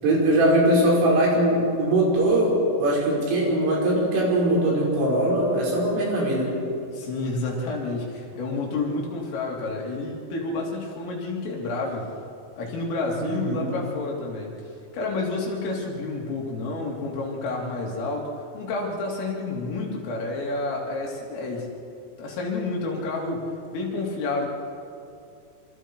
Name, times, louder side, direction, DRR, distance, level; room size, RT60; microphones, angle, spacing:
voice 1, 0.0-6.6 13.2-13.7, right 1 dB, 80° right, -4 dB, 8.0 m, -21 dB
voice 2, 6.9-12.1 12.6-14.5 14.9-21.7 22.2-23.5 23.7-24.5, left 3 dB, 85° left, -2 dB, 5.8 m, -29 dB
27.0 x 26.5 x 4.7 m, 2.5 s
omnidirectional pair, 5.6 m